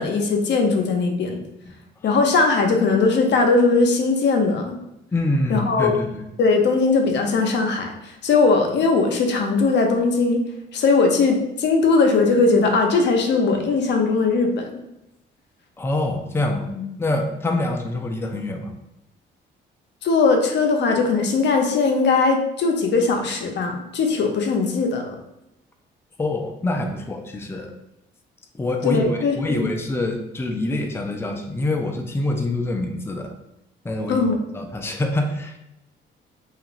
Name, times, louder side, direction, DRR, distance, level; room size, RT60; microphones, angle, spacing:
voice 1, 0.0-1.4 2.0-4.8 5.5-5.9 6.4-10.4 10.7-14.8 16.7-16.8 20.0-25.2 28.8-29.7 34.1-34.4, left 4 dB, 60° left, 3 dB, 0.6 m, -19 dB
voice 2, 5.1-6.3 15.8-16.7 17.0-18.7 26.2-27.7 28.5-29.1 29.4-33.3 33.8-34.2 34.5-35.6, left 2 dB, 10° left, 3 dB, 0.4 m, -25 dB
2.5 x 2.4 x 2.9 m, 0.86 s
cardioid pair, 90°, 20 cm